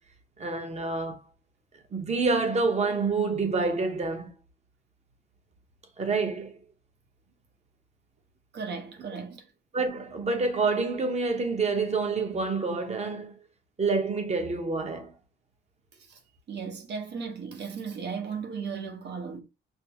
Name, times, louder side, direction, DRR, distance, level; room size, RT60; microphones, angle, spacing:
voice 1, 0.4-1.2 1.9-4.3 6.0-6.6 9.7-13.4 13.8-15.1, right 4 dB, 35° right, 1.0 m, -27 dB
voice 2, 8.5-9.4 16.1-16.2 16.5-19.4, right 5 dB, 60° right, 1.1 m, -36 dB
5.3 x 2.0 x 3.0 m
cardioid pair, 90°, 20 cm